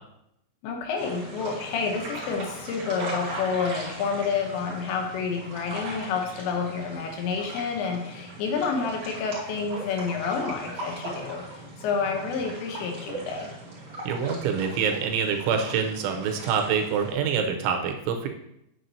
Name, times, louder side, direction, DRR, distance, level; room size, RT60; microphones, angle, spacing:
voice 1, 0.6-13.5, left 5 dB, 75° left, 2 dB, 3.0 m, -29 dB
sound 1, 1.0-17.1, right 1 dB, 40° right, 2.0 m, -39 dB
voice 2, 14.1-18.3, right 6 dB, 85° right, 4 dB, 3.1 m, -26 dB
9.1 x 7.1 x 2.7 m, 0.79 s
omnidirectional pair, 5.5 m